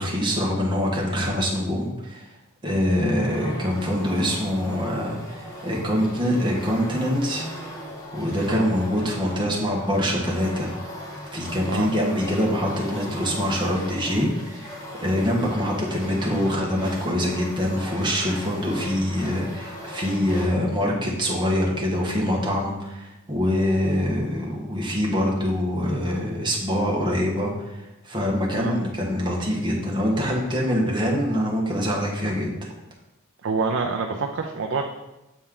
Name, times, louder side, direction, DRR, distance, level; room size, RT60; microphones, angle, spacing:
voice 1, 0.0-2.2 2.6-7.5 8.1-10.9 11.3-14.7 15.0-32.7, equal, 20° right, -3 dB, 1.2 m, -24 dB
hand drum, 3.2-20.5, equal, 15° left, 1.3 m, -37 dB
voice 2, 33.4-34.8, right 4 dB, 60° right, 2 dB, 0.5 m, -26 dB
7.3 x 4.2 x 3.7 m, 0.96 s
head